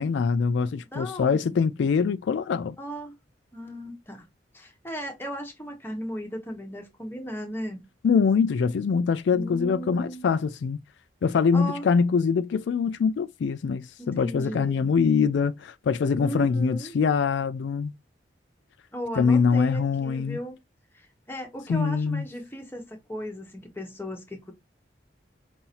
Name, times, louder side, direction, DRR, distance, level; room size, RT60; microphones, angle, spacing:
voice 1, 0.0-2.8 8.0-10.8 11.2-17.9 19.2-20.4 21.7-22.3, left 5 dB, 70° left, 0.3 m, -24 dB
voice 2, 0.9-1.6 2.8-3.1 3.5-4.3 4.5-7.9 9.3-10.3 11.5-11.8 14.0-14.9 16.2-16.9 18.9-20.6 20.9-24.5, equal, 10° left, 1.0 m, -36 dB
5.5 x 2.6 x 2.9 m
head